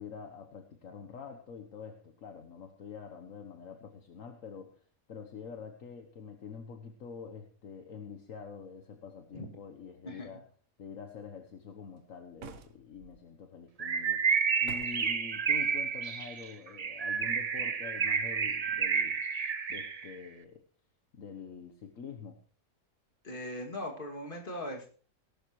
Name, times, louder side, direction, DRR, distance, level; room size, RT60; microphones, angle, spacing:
voice 1, 0.0-10.4 10.8-14.2 14.6-19.2 19.7-20.6 21.1-22.4, left 6 dB, 65° left, 5 dB, 1.5 m, -46 dB
voice 2, 10.0-10.4 23.2-24.9, left 1 dB, 35° left, 0 dB, 2.7 m, -40 dB
sound 1, 12.4-13.1 14.6-15.2, right 7 dB, 60° right, 1.2 m, -47 dB
Bird, 13.8-20.1, right 6 dB, 40° right, 0.5 m, -30 dB
18.5 x 12.0 x 3.2 m, 0.42 s
omnidirectional pair, 1.5 m